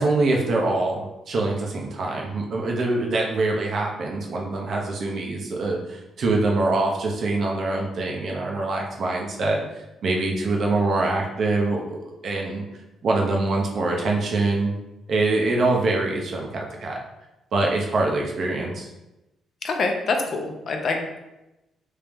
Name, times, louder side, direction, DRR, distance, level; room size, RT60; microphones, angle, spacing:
voice 1, 0.0-9.6 10.0-12.6 13.0-14.7 15.1-17.0 17.5-18.9, right 2 dB, 55° right, 0 dB, 0.8 m, -24 dB
voice 2, 19.6-21.2, left 3 dB, 55° left, 3 dB, 0.6 m, -26 dB
3.3 x 2.8 x 3.5 m, 0.95 s
cardioid pair, 90°, 0 cm